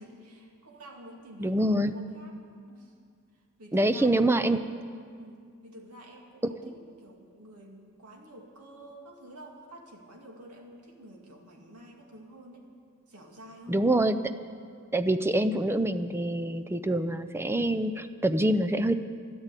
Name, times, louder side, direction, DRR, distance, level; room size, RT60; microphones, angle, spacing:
voice 1, 0.0-2.4 2.7-3.0 3.3-4.2 5.2-12.7 13.1-13.9, right 1 dB, 90° right, 1 dB, 2.3 m, -49 dB
voice 2, 1.4-1.9 3.7-4.6 6.6-6.7 13.7-14.2 14.9-18.9, right 1 dB, 10° right, 10 dB, 0.5 m, -25 dB
13.0 x 12.0 x 8.3 m, 2.2 s
head